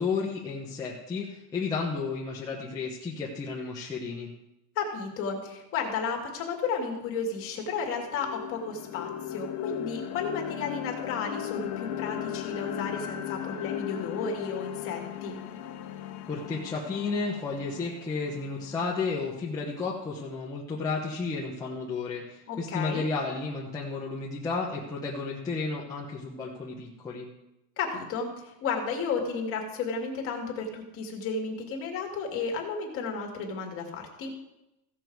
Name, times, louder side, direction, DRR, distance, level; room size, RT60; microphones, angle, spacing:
voice 1, 0.0-4.3 16.3-27.3, left 4 dB, 10° left, -5 dB, 0.9 m, -32 dB
voice 2, 4.8-15.4 22.5-23.1 27.8-34.3, left 5 dB, 30° left, 1 dB, 2.0 m, -33 dB
sound 1, 6.8-6.9 7.4-19.4, left 11 dB, 50° left, 0.9 m, -37 dB
15.5 x 6.8 x 4.6 m, 0.92 s
cardioid pair, 170°, 42 cm